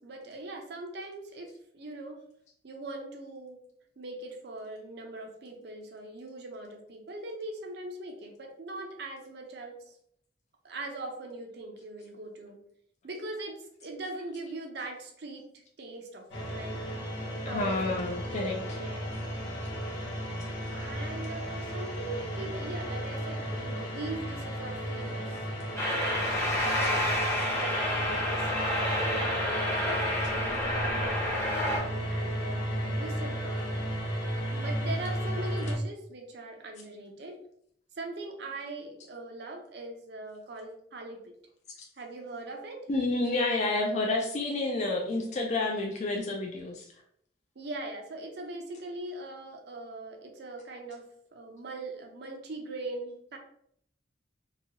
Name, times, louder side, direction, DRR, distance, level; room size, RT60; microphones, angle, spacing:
voice 1, 0.0-2.2 2.6-3.6 4.0-10.0 10.6-12.6 13.0-16.8 17.5-19.1 19.9-20.1 20.7-25.4 25.7-27.0 27.5-30.0 30.3-33.8 34.5-37.4 38.0-41.3 42.0-42.8 47.6-51.0 51.3-53.4, right 2 dB, 60° right, 2 dB, 0.6 m, -41 dB
sound 1, 16.3-35.8, equal, 75° left, 0.9 m, -34 dB
voice 2, 17.5-18.6 26.8-26.9 42.9-46.8, left 2 dB, 40° left, 0 dB, 0.3 m, -29 dB
sound 2, 25.8-31.8, left 1 dB, 15° left, 0.7 m, -29 dB
2.9 x 2.2 x 2.8 m, 0.69 s
head